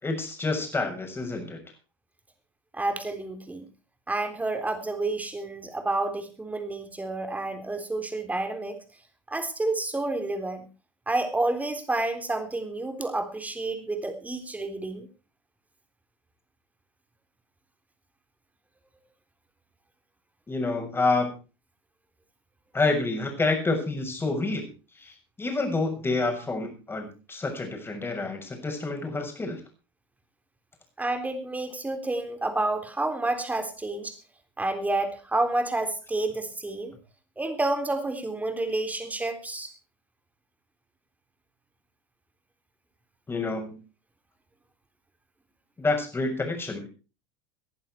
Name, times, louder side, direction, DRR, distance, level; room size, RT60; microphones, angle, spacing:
voice 1, 0.0-1.6 20.5-21.3 22.7-24.7 25.0-29.6 43.3-43.8 45.8-46.9, left 3 dB, 15° left, 4 dB, 6.7 m, -28 dB
voice 2, 2.7-3.7 4.1-8.8 9.3-10.7 11.1-15.1 31.0-34.2 34.6-36.9 37.4-39.7, right 2 dB, 10° right, 8 dB, 3.7 m, -29 dB
19.5 x 11.0 x 4.5 m, 0.33 s
hypercardioid pair, 85°, 14 cm